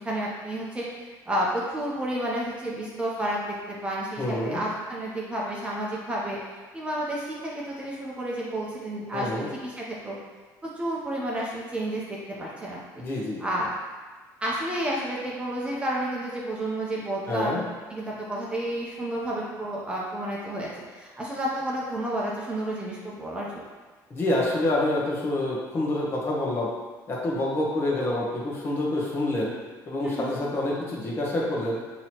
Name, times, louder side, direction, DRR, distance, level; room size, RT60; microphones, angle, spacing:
voice 1, 0.0-6.4 6.7-10.2 10.6-13.0 13.4-13.7 14.4-17.6 17.9-23.6 30.0-30.3, right 1 dB, 15° right, -5 dB, 0.7 m, -31 dB
voice 2, 4.2-4.6 9.1-9.5 13.0-13.4 17.3-17.6 24.1-26.7 27.1-29.5 29.9-31.8, left 1 dB, 30° left, -4 dB, 1.0 m, -27 dB
5.9 x 2.9 x 2.9 m, 1.3 s
cardioid pair, 140°, 7 cm